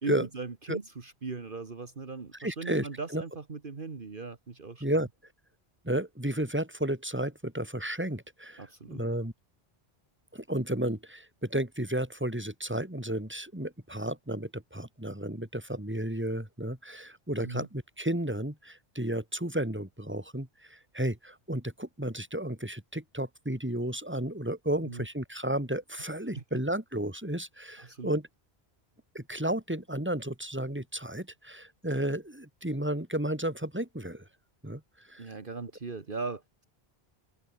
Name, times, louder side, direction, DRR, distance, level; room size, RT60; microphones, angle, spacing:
voice 1, 0.0-5.0 8.6-9.0 17.4-17.7 24.8-25.0 26.0-26.1 26.3-26.4 27.8-28.2 35.2-36.6, right 4 dB, 55° right, 1.8 m, -39 dB
voice 2, 2.4-2.9 3.1-3.2 4.8-5.1 5.8-9.3 10.3-28.3 29.1-34.2 34.6-34.8 35.1-35.3, right 1 dB, 10° right, 3.3 m, -32 dB
omnidirectional pair, 1.1 m